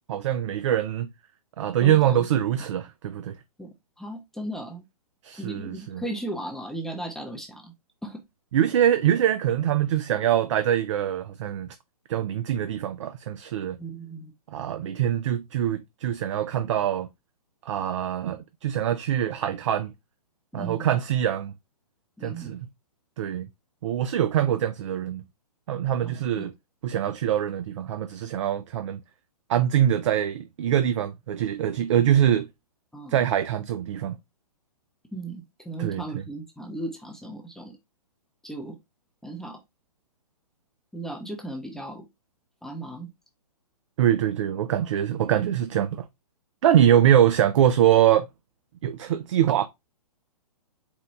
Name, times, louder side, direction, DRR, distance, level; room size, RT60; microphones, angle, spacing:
voice 1, 0.1-1.1 1.6-3.4 5.2-6.0 8.5-11.7 12.1-13.8 14.5-17.1 17.7-19.9 20.5-21.5 22.2-22.7 23.2-23.5 23.8-25.2 25.7-26.5 26.8-29.0 29.5-32.5 33.1-34.2 35.8-36.2 44.0-46.1 46.6-48.3 48.8-49.7, right 10 dB, 50° right, 0.4 m, -23 dB
voice 2, 1.8-2.3 3.6-4.8 5.4-7.7 8.0-8.2 13.8-14.3 20.5-20.9 22.2-22.6 26.0-26.5 32.9-33.2 35.1-37.8 38.4-38.7 39.2-39.6 40.9-42.1 42.6-43.1, right 2 dB, ahead, 0.6 m, -36 dB
4.4 x 2.2 x 4.0 m
hypercardioid pair, 130°, 19 cm